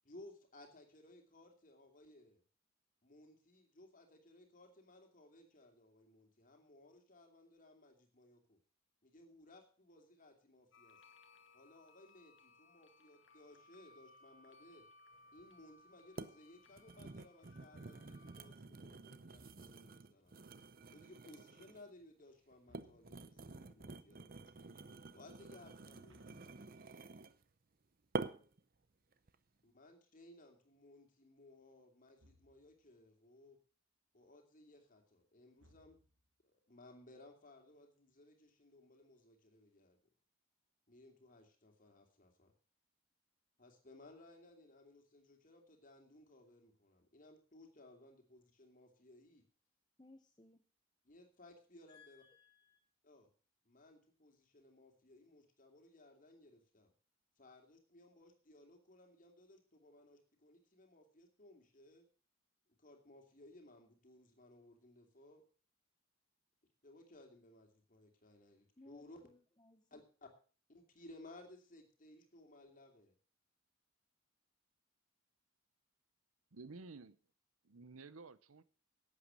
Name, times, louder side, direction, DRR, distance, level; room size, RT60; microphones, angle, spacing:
voice 1, 0.0-2.4 3.0-8.6 9.0-11.0 11.5-14.9 15.3-20.4 20.9-24.7 25.1-27.1 29.6-33.6 34.1-36.0 36.4-40.0 40.9-42.5 43.6-49.4 51.0-52.2 53.0-53.3 53.6-56.9 57.4-62.1 62.8-65.4 66.8-69.3 69.9-70.3 70.7-73.2, left 2 dB, 40° left, 3 dB, 2.6 m, -61 dB
sound 1, 10.7-18.5, left 3 dB, 60° left, 1.5 m, -65 dB
sound 2, 15.4-15.5 16.2-16.4 16.7-21.9 22.5-27.4 28.1-28.6 29.1-29.4, right 3 dB, 45° right, 0.6 m, -48 dB
sound 3, 19.3-20.1 22.6-23.5 26.1-27.2 32.2-32.9 35.6-36.4, equal, 70° right, 1.5 m, -70 dB
voice 2, 50.0-50.7 51.9-52.8 68.8-70.0, left 3 dB, 20° left, 6 dB, 0.8 m, -63 dB
voice 3, 76.5-77.2 77.6-78.6, right 3 dB, 85° right, 16 dB, 0.8 m, -53 dB
11.5 x 8.6 x 6.3 m, 0.39 s
head